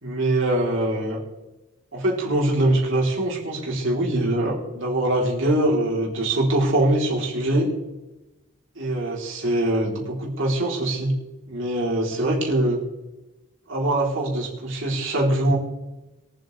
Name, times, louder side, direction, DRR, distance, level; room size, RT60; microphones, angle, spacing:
voice 1, 0.0-1.2 1.9-7.7 8.8-11.1 11.5-12.8 13.7-15.6, right 1 dB, 65° right, -3 dB, 3.7 m, -23 dB
23.0 x 7.9 x 3.4 m, 1.0 s
head